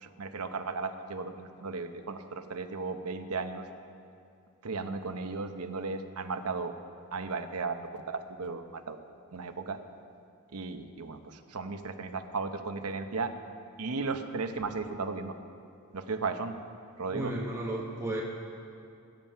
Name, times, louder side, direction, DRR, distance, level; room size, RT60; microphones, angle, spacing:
voice 1, 0.0-3.6 4.6-6.7 7.1-9.0 9.3-9.8 10.5-11.2 11.5-13.3 13.8-15.4 15.9-16.5 17.0-17.3, right 4 dB, 85° right, 7 dB, 0.9 m, -35 dB
voice 2, 17.1-18.2, right 1 dB, 15° right, -4 dB, 1.2 m, -33 dB
18.0 x 9.0 x 5.6 m, 2.5 s
head